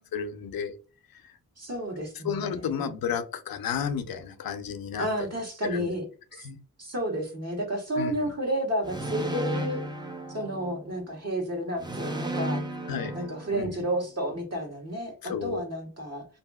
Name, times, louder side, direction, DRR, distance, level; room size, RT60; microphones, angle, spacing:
voice 1, 0.1-0.7 2.2-5.1 5.6-5.9 6.4-6.6 8.0-8.1 12.9-13.2 13.5-13.8 15.2-15.6, left 7 dB, 85° left, 9 dB, 0.5 m, -32 dB
voice 2, 1.6-2.9 5.0-6.1 6.3-6.5 6.8-9.8 10.3-12.6 13.1-16.3, right 1 dB, 45° right, 0 dB, 1.3 m, -31 dB
sound 1, 8.8-11.0 11.8-14.0, right 1 dB, 10° right, 0.6 m, -34 dB
2.7 x 2.6 x 2.3 m, 0.36 s
cardioid pair, 70°, 34 cm